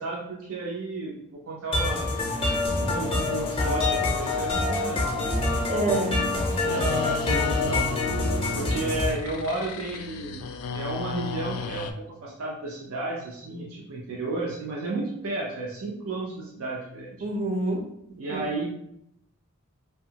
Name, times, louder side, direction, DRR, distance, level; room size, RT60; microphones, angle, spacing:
voice 1, 0.0-5.3 6.3-7.9 8.5-10.5 10.7-17.2 18.2-18.7, right 2 dB, 85° right, -3 dB, 0.5 m, -33 dB
sound 1, 1.7-9.1, left 2 dB, 25° left, 0.5 m, -26 dB
voice 2, 5.7-6.3 17.2-17.9 18.3-18.4, right 2 dB, 30° right, 2 dB, 0.4 m, -27 dB
sound 2, 6.7-11.9, left 4 dB, 90° left, 0.3 m, -35 dB
2.7 x 2.3 x 2.7 m, 0.75 s
head